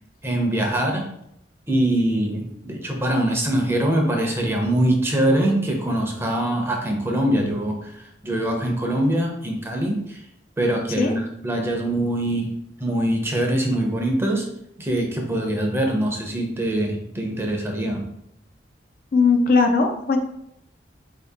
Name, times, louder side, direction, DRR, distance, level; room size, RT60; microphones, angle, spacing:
voice 1, 0.2-1.0 1.7-10.2 10.6-14.4 14.8-18.0, right 1 dB, 15° right, 1 dB, 0.6 m, -23 dB
voice 2, 19.1-20.2, left 4 dB, 55° left, 5 dB, 0.4 m, -18 dB
4.4 x 2.8 x 3.5 m, 0.75 s
head